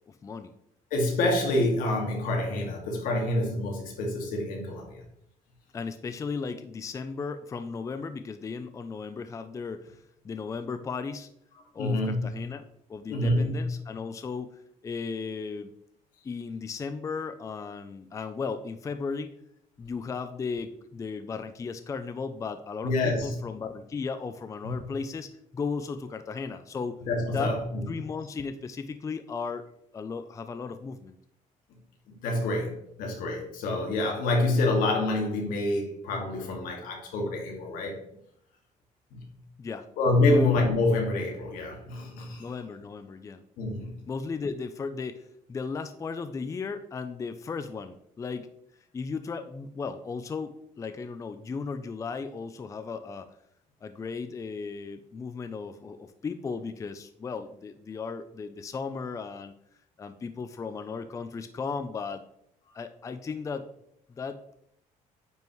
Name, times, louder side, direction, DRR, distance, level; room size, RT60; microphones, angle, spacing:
voice 1, 0.1-0.5 5.7-10.0 10.2-11.3 11.7-15.7 16.2-19.3 19.8-27.0 27.3-27.5 27.9-29.7 29.9-31.1 39.6-39.9 40.3-40.4 42.4-43.4 44.1-48.5 48.9-53.3 53.8-59.5 60.0-62.2 62.7-63.7 64.1-64.5, left 5 dB, 25° left, 10 dB, 0.4 m, -36 dB
voice 2, 0.9-5.0 11.8-12.2 13.1-13.6 22.8-23.4 24.6-24.7 27.0-27.8 32.1-38.0 39.1-39.3 40.0-42.5 43.6-44.0, left 2 dB, 85° left, 1 dB, 2.1 m, -27 dB
9.3 x 5.3 x 3.1 m, 0.73 s
cardioid pair, 130°, 14 cm